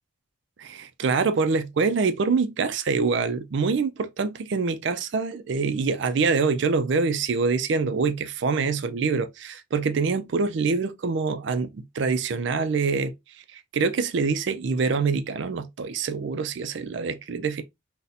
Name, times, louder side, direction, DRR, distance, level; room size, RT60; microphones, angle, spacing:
voice 1, 0.6-17.6, right 4 dB, 55° right, 0.4 m, -25 dB
4.0 x 2.1 x 2.5 m
head